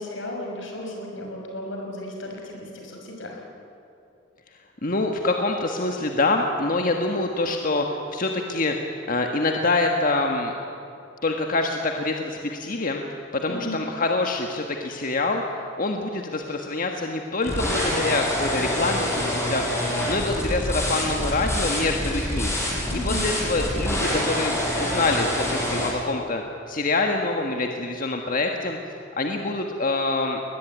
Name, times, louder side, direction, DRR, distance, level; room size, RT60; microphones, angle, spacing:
voice 1, 0.0-3.4 13.5-13.8 22.9-23.2, left 1 dB, 85° left, 0 dB, 6.2 m, -34 dB
voice 2, 4.8-8.8 9.1-10.5 11.2-13.0 13.3-19.7 20.1-22.5 22.9-28.8 29.2-30.4, left 2 dB, 45° left, 3 dB, 1.5 m, -25 dB
sound 1, 17.4-25.9, left 1 dB, 15° left, 6.5 m, -26 dB
22.0 x 20.0 x 9.3 m, 2.7 s
head